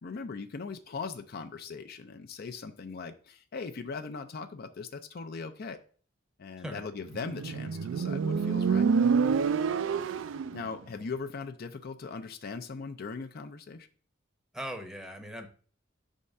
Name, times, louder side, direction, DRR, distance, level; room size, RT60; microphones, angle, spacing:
voice 1, 0.0-5.8 6.4-8.9 10.5-13.9, left 4 dB, 55° left, 7 dB, 0.5 m, -39 dB
voice 2, 6.6-6.9 14.5-15.5, equal, 5° right, 5 dB, 0.7 m, -39 dB
Motorcycle, 7.1-10.6, right 5 dB, 80° right, 0.4 m, -27 dB
5.5 x 3.6 x 5.3 m, 0.43 s
head